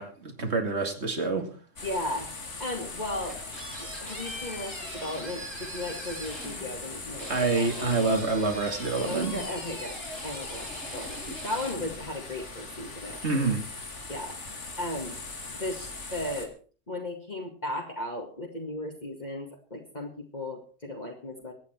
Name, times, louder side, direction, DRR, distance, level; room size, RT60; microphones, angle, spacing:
voice 1, 0.0-1.5 7.3-9.4 13.2-13.6, right 3 dB, 60° right, 5 dB, 2.8 m, -27 dB
sound 1, 1.8-16.5, left 3 dB, 65° left, 2.7 m, -40 dB
voice 2, 1.8-2.3 2.6-3.4 3.8-8.1 9.0-10.0 10.2-13.6 14.1-14.4 14.8-15.2 15.5-16.5 16.9-21.5, left 1 dB, 35° left, -1 dB, 2.4 m, -36 dB
sound 2, 3.3-12.7, right 1 dB, 85° right, 7.8 m, -43 dB
24.0 x 9.2 x 4.6 m, 0.41 s
omnidirectional pair, 1.3 m